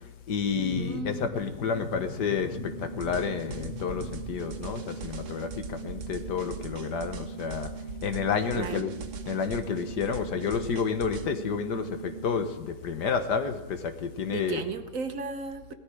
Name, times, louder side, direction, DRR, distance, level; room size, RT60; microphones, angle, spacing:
voice 1, 0.3-7.7 8.0-8.9 9.3-14.6, left 6 dB, 75° left, 8 dB, 1.7 m, -30 dB
sound 1, 0.5-4.8, left 5 dB, 60° left, 2.5 m, -40 dB
voice 2, 0.8-1.3 8.5-8.8 14.3-15.7, right 5 dB, 55° right, 8 dB, 1.2 m, -35 dB
sound 2, 2.5-12.5, right 6 dB, 10° right, 1.7 m, -41 dB
sound 3, 3.0-11.3, right 4 dB, 70° right, 1.5 m, -42 dB
17.5 x 14.0 x 4.9 m, 1.0 s
omnidirectional pair, 1.8 m